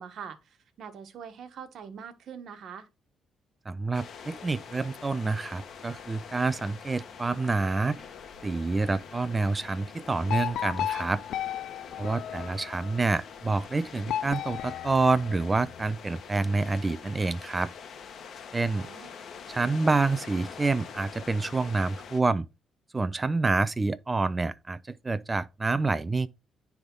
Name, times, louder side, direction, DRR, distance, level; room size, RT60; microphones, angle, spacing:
voice 1, 0.0-2.9 18.7-19.1, right 7 dB, 65° right, 1.4 m, -43 dB
voice 2, 3.7-8.0 8.4-11.2 12.0-17.7 18.5-18.9 19.5-22.5 22.9-26.3, right 3 dB, 25° right, 0.6 m, -27 dB
sound 1, 3.9-22.2, left 6 dB, 60° left, 1.2 m, -45 dB
sound 2, 10.3-13.0 14.1-15.8, left 11 dB, 75° left, 0.3 m, -34 dB
9.8 x 3.6 x 3.9 m
cardioid pair, 90°, 0 cm